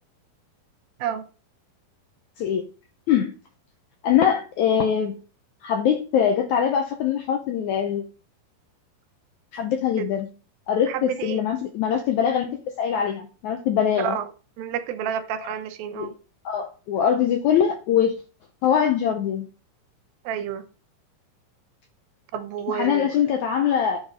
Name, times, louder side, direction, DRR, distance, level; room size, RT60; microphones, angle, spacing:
voice 1, 4.0-5.2 5.6-8.0 9.5-10.3 10.7-14.2 15.4-15.5 15.9-16.1 16.5-18.1 18.6-19.5 22.7-24.0, left 8 dB, 80° left, 1.7 m, -23 dB
voice 2, 10.9-11.4 14.0-14.3 14.6-16.1 20.3-20.6 22.3-23.1, right 9 dB, 80° right, 2.4 m, -29 dB
9.7 x 4.2 x 5.1 m
omnidirectional pair, 4.2 m